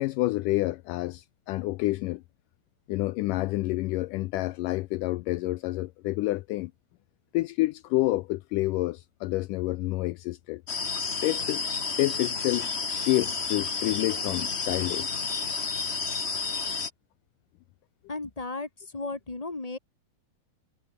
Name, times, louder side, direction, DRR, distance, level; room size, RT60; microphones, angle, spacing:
voice 1, 0.0-2.2 2.9-6.7 7.3-10.6 11.2-11.7 12.0-15.1, left 19 dB, 80° left, 2.0 m, -28 dB
sound 1, 10.7-16.9, left 5 dB, 60° left, 0.6 m, -31 dB
voice 2, 18.1-19.8, left 3 dB, 15° left, 1.2 m, -35 dB
omnidirectional pair, 4.1 m